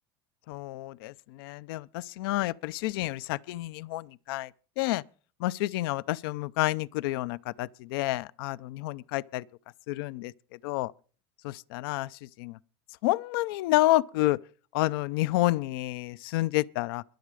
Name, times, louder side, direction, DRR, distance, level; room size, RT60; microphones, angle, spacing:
voice 1, 0.5-4.5 4.8-5.0 5.4-9.4 9.9-10.3 10.6-10.9 11.4-12.1 12.4-12.6 13.0-14.4 14.7-17.0, left 17 dB, 75° left, 0.5 m, -29 dB
22.0 x 7.5 x 4.9 m
supercardioid pair, 145°, 12 cm